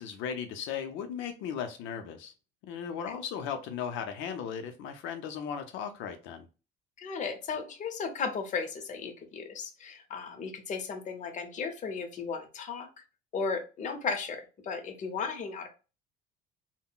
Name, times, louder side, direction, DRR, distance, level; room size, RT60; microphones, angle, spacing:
voice 1, 0.0-2.3 2.6-6.5, left 7 dB, 85° left, 0.5 m, -36 dB
voice 2, 7.0-12.9 13.3-15.7, left 5 dB, 40° left, 0.7 m, -35 dB
3.6 x 2.1 x 2.3 m
cardioid pair, 130°, 19 cm